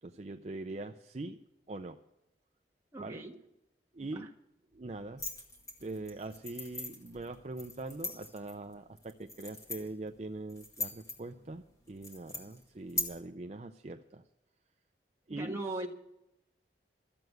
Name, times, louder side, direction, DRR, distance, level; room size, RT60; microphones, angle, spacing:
voice 1, 0.0-1.4 1.7-2.0 3.0-3.2 3.9-4.3 4.7-5.2 5.8-14.2 15.3-15.6, right 2 dB, 40° right, 6 dB, 0.5 m, -42 dB
voice 2, 2.9-3.3 4.1-4.3 15.3-15.9, right 2 dB, 15° right, -1 dB, 1.5 m, -38 dB
sound 1, 5.2-13.0, left 1 dB, 20° left, 2.0 m, -42 dB
14.0 x 7.9 x 9.3 m, 0.89 s
head